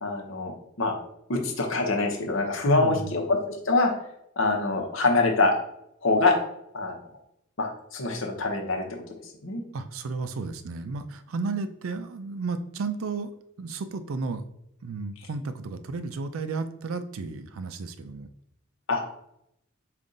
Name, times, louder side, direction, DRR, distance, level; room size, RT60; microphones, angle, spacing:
voice 1, 0.0-0.5 0.8-0.9 1.3-3.9 4.4-5.6 6.0-6.4 6.7-7.0 7.6-9.0 9.4-9.6 18.9-19.0, left 3 dB, 65° left, 1 dB, 0.9 m, -24 dB
voice 2, 2.7-3.1 9.7-13.3 13.6-14.4 14.8-18.3, right 3 dB, 80° right, 10 dB, 0.4 m, -32 dB
5.3 x 2.5 x 3.8 m, 0.78 s
head